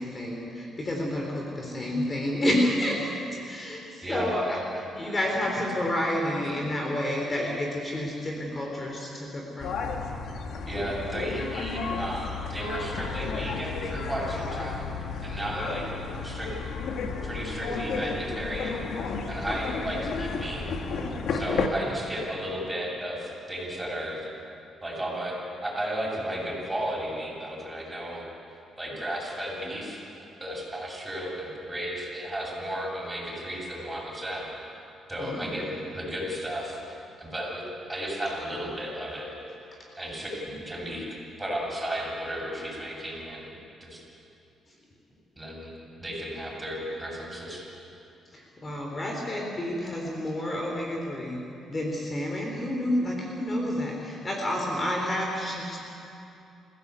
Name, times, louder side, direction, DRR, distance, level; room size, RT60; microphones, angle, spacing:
voice 1, 0.0-3.1 3.5-9.8 35.2-35.7 48.3-51.4 51.7-55.8, left 1 dB, 30° left, 0 dB, 3.8 m, -29 dB
sound 1, 9.6-21.7, left 4 dB, 70° left, 2.1 m, -33 dB
voice 2, 10.6-14.8 15.2-15.9 16.2-16.5 17.2-18.8 19.3-20.7 21.3-24.2 24.8-28.2 28.5-30.0 30.4-34.6 35.1-35.7 35.9-37.6 37.9-39.3 40.0-43.5 43.8-44.0 45.4-45.7 46.0-47.6, equal, 15° right, -3 dB, 8.0 m, -34 dB
26.5 x 16.0 x 8.3 m, 2.7 s
cardioid pair, 90°, 0 cm